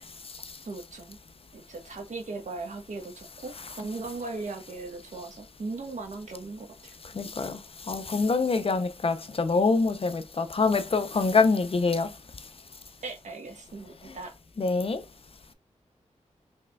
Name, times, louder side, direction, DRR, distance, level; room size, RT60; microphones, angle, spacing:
voice 1, 0.6-1.2 1.5-6.9 13.0-14.3, right 3 dB, 70° right, 1.3 m, -38 dB
voice 2, 7.1-7.6 7.9-12.1 14.6-15.0, left 4 dB, 50° left, 0.6 m, -25 dB
5.4 x 3.5 x 2.3 m
cardioid pair, 55°, 13 cm